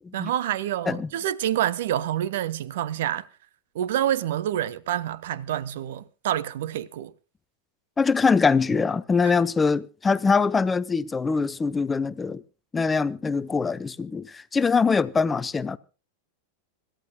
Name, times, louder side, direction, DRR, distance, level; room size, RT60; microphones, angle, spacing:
voice 1, 0.1-3.3 3.7-7.1 9.2-9.3, right 11 dB, 55° right, 0.9 m, -27 dB
voice 2, 8.0-12.4 12.7-15.8, left 5 dB, 15° left, 0.6 m, -23 dB
26.5 x 14.0 x 2.2 m
figure-of-eight pair, 90°, 0 cm